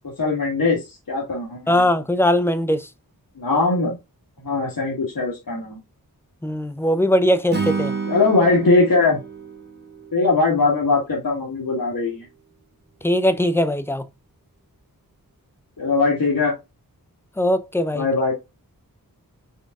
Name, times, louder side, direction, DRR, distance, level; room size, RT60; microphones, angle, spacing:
voice 1, 0.2-1.8 3.4-4.0 4.4-5.8 8.1-9.2 10.1-12.3 15.8-16.5 17.9-18.3, left 3 dB, 70° left, 1.5 m, -20 dB
voice 2, 1.7-2.9 6.4-7.9 13.0-14.1 17.4-18.1, left 1 dB, 5° left, 0.5 m, -20 dB
Acoustic guitar / Strum, 7.5-10.8, right 4 dB, 30° right, 1.0 m, -30 dB
5.2 x 3.9 x 2.3 m
wide cardioid pair, 80°, 35 cm